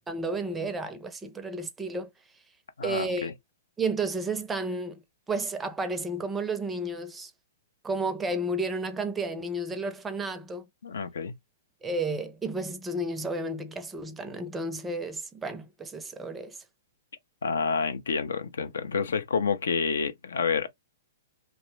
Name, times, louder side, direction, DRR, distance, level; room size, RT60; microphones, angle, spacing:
voice 1, 0.1-2.1 2.8-3.3 3.8-5.0 5.3-7.3 7.8-10.7 11.8-16.6, right 2 dB, 15° right, 0.4 m, -32 dB
voice 2, 2.8-3.3 10.8-11.3 17.4-20.7, left 5 dB, 80° left, 0.4 m, -28 dB
2.5 x 2.0 x 3.0 m
hypercardioid pair, 125°, 0 cm